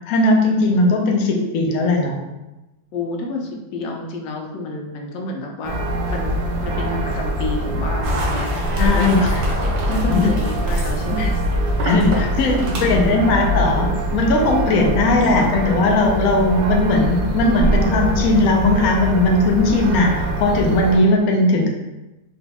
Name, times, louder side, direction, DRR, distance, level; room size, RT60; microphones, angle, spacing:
voice 1, 0.1-2.2 8.8-9.4 10.1-10.3 11.8-21.7, left 2 dB, 70° left, 1 dB, 0.9 m, -18 dB
voice 2, 2.9-5.8 6.1-9.3 9.9-11.4 12.6-13.2 15.1-15.7, left 1 dB, 85° left, 1 dB, 1.3 m, -29 dB
sound 1, 5.6-21.0, right 1 dB, 75° right, 1.2 m, -23 dB
sound 2, 8.0-13.1, right 1 dB, 55° right, 0.8 m, -26 dB
4.0 x 2.2 x 2.8 m, 1.0 s
omnidirectional pair, 1.9 m